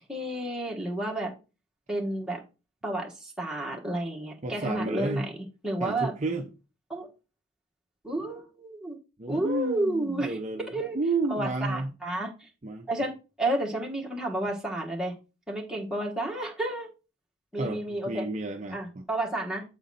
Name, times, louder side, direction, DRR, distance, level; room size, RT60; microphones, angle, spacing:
voice 1, 0.1-1.3 1.9-2.4 2.8-5.3 5.6-6.1 6.9-7.1 8.0-9.0 9.3-10.4 10.7-11.0 11.3-12.5 12.9-15.2 15.5-16.9 17.5-18.3 18.7-19.6, right 1 dB, 5° right, 1.4 m, -31 dB
voice 2, 4.4-5.3 5.8-6.5 9.2-11.9 12.6-12.9 17.6-19.1, right 3 dB, 35° right, 0.6 m, -31 dB
7.4 x 4.0 x 4.1 m
head